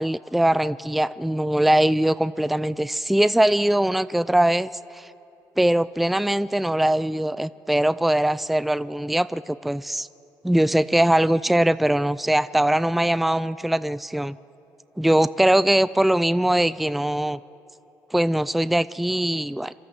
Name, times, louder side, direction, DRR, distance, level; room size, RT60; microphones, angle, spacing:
voice 1, 0.0-5.1 5.6-10.1 10.4-14.4 15.0-17.4 18.1-19.7, right 1 dB, ahead, 16 dB, 0.4 m, -21 dB
26.5 x 13.5 x 7.9 m, 2.7 s
cardioid pair, 85°, 7 cm